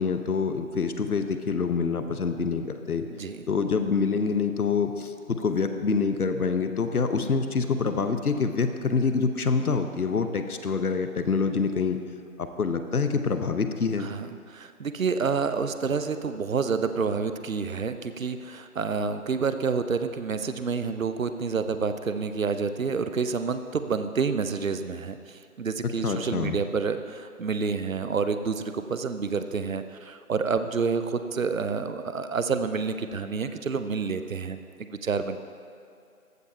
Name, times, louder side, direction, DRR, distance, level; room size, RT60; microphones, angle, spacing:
voice 1, 0.0-3.1 3.5-12.0 12.4-14.1 26.0-26.6, left 5 dB, 75° left, 8 dB, 0.9 m, -26 dB
voice 2, 14.0-35.4, right 5 dB, 65° right, 10 dB, 0.7 m, -29 dB
14.5 x 5.4 x 4.3 m, 2.5 s
figure-of-eight pair, 155°, 44 cm